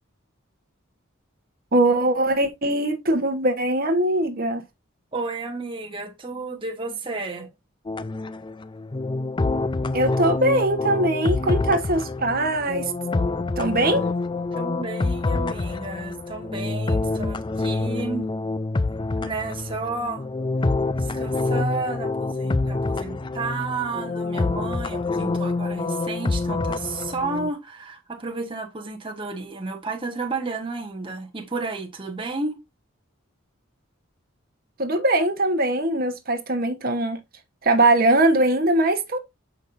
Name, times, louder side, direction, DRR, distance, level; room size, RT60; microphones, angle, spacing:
voice 1, 1.7-4.6 9.9-12.9 13.6-14.0 34.8-37.2 37.6-39.2, right 1 dB, 45° right, 1.1 m, -21 dB
voice 2, 5.1-7.5 14.5-18.3 19.2-20.2 21.0-32.6, right 3 dB, 25° right, 1.1 m, -32 dB
sound 1, 7.9-27.5, left 3 dB, 25° left, 0.4 m, -26 dB
8.2 x 5.5 x 2.6 m
head